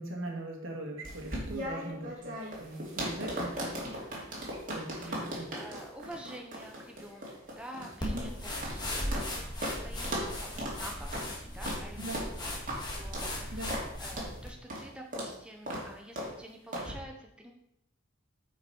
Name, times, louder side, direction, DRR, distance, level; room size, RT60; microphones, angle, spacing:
voice 1, 0.0-3.7 4.7-5.5 8.0-8.3 12.0-12.2 13.5-13.8, right 1 dB, 70° right, 0 dB, 1.8 m, -40 dB
sound 1, 1.0-9.3 9.6-9.8 10.0-10.3 10.6-10.8 11.1-11.3 11.6-11.8 12.1-12.3 12.7-12.8 13.1-13.3 13.7-13.9 14.2-14.3 14.7-14.9 15.1-15.3 15.7-15.9 16.2-16.3 16.7-16.9, equal, 40° right, 2.3 m, -37 dB
voice 2, 5.0-7.3 7.6-8.6 8.9-17.5, right 1 dB, 5° right, 2 dB, 0.7 m, -48 dB
sound 2, 8.0-14.5, left 1 dB, 20° left, 1.7 m, -37 dB
8.9 x 5.3 x 4.4 m, 0.78 s
head